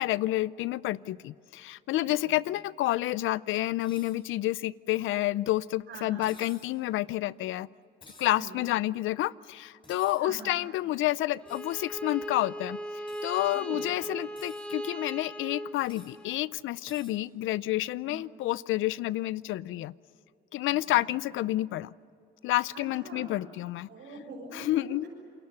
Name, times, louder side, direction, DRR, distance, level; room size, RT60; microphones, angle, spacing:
voice 1, 0.0-7.7 8.2-12.8 13.2-19.9 20.5-21.9 22.4-23.9 24.5-25.0, left 16 dB, 85° left, 19 dB, 0.6 m, -29 dB
voice 2, 2.0-2.4 5.9-6.3 8.3-8.6 10.2-10.6 13.5-13.8 18.0-18.2 20.9-21.1 22.7-23.3 23.9-25.1, right 2 dB, 80° right, -4 dB, 6.8 m, -44 dB
sound 1, 3.8-4.2 6.2-6.7 8.0-8.4 9.8-10.2 11.5-11.7 13.1-13.3 14.2-14.7 15.9-16.2 16.9-17.2, left 2 dB, 25° left, 6.5 m, -53 dB
Bowed string instrument, 11.4-16.4, equal, 5° left, 3.8 m, -38 dB
28.0 x 22.5 x 7.0 m, 2.6 s
cardioid pair, 90°, 20 cm